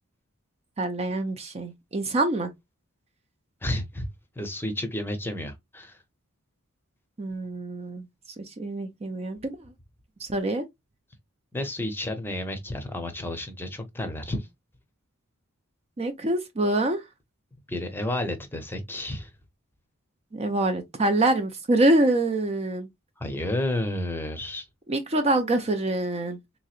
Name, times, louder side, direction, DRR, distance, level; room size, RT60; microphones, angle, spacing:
voice 1, 0.8-2.5 7.2-8.1 8.4-9.6 10.2-10.6 16.0-17.0 20.3-22.9 24.9-26.4, right 2 dB, 30° right, 0.5 m, -25 dB
voice 2, 3.6-4.0 4.4-6.0 11.5-14.5 17.7-19.3 23.2-24.7, left 1 dB, 10° left, 0.7 m, -31 dB
3.7 x 3.0 x 2.4 m
head